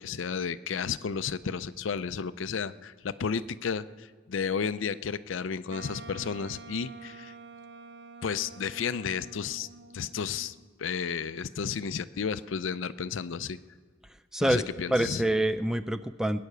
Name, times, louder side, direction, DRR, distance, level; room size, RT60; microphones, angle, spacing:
voice 1, 0.0-7.3 8.2-9.7 9.9-13.6 14.4-15.2, left 6 dB, 70° left, 15 dB, 0.5 m, -32 dB
Wind instrument woodwind instrument, 5.7-10.7, right 3 dB, 60° right, 0.6 m, -48 dB
voice 2, 14.3-16.5, right 1 dB, 5° right, 11 dB, 0.3 m, -27 dB
21.0 x 9.4 x 6.7 m, 1.5 s
head